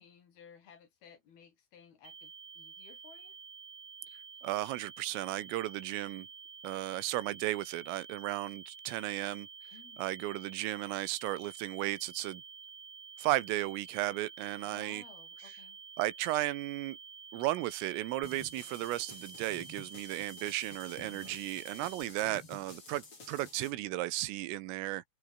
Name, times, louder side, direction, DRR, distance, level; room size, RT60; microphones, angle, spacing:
voice 1, 0.0-3.4 9.7-10.0 14.6-15.8, left 7 dB, 55° left, 4.7 m, -57 dB
sound 1, 2.0-22.0, right 6 dB, 40° right, 2.3 m, -50 dB
voice 2, 4.4-6.3 6.6-9.5 10.0-12.4 13.2-15.0 16.0-17.0 17.3-25.0, right 16 dB, 90° right, 3.8 m, -35 dB
sound 2, 18.2-23.7, left 3 dB, 25° left, 6.6 m, -51 dB
open air
omnidirectional pair, 5.8 m